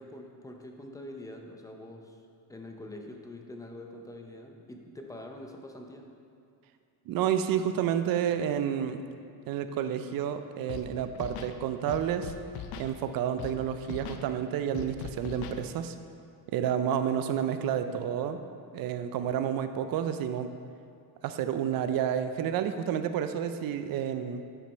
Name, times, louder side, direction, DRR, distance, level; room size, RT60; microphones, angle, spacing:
voice 1, 0.0-2.2 2.5-6.1, left 1 dB, 10° left, 2 dB, 0.5 m, -45 dB
voice 2, 7.1-9.0 9.5-12.3 12.8-15.9 16.5-18.4 18.7-20.5 21.2-24.4, right 9 dB, 55° right, 9 dB, 0.5 m, -30 dB
Scratching (performance technique), 10.7-10.9 11.1-11.5 11.9-12.9 13.4-13.5 13.8-14.2 14.7-15.6, left 8 dB, 60° left, 0.6 m, -40 dB
8.6 x 5.1 x 4.5 m, 2.5 s
cardioid pair, 145°, 41 cm